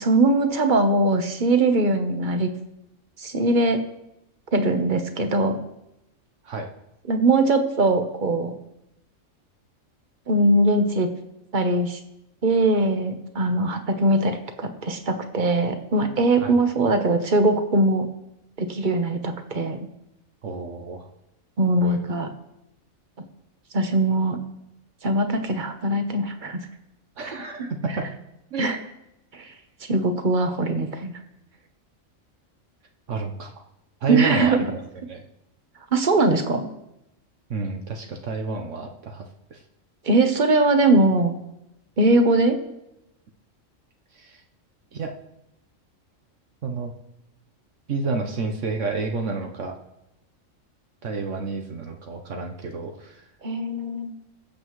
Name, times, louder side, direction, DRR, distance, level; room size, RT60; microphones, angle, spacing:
voice 1, 0.0-2.5 3.2-3.8 4.5-5.6 7.1-8.5 10.3-11.1 11.5-12.0 12.4-18.1 18.6-19.9 21.6-22.3 23.7-24.4 25.0-26.6 27.3-27.4 28.6-28.8 29.3-29.5 29.8-31.1 34.1-34.7 35.9-36.7 40.0-41.3 42.0-42.6 53.4-54.1, right 2 dB, 40° right, 7 dB, 1.1 m, -21 dB
voice 2, 20.4-21.1 21.8-22.0 27.2-28.1 28.5-28.8 33.1-33.5 34.0-34.8 35.1-35.2 37.5-39.6 44.1-44.4 44.9-45.1 46.6-46.9 47.9-49.8 51.0-53.2, right 3 dB, 65° right, 3 dB, 1.3 m, -30 dB
22.0 x 7.6 x 3.1 m, 0.87 s
omnidirectional pair, 1.4 m